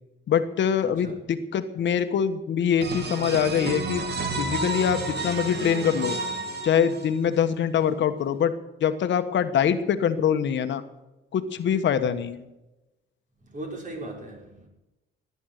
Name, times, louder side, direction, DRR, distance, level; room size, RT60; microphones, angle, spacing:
voice 1, 0.3-4.0 4.4-6.2 6.6-8.5 8.8-10.8 11.3-12.4, left 8 dB, 65° left, 9 dB, 1.3 m, -24 dB
voice 2, 0.8-1.1 12.0-12.1 13.5-14.7, right 2 dB, 40° right, 0 dB, 6.2 m, -38 dB
sound 1, 2.8-7.4, right 3 dB, 55° right, 3.1 m, -31 dB
17.5 x 10.5 x 6.7 m, 0.98 s
cardioid pair, 90°, 20 cm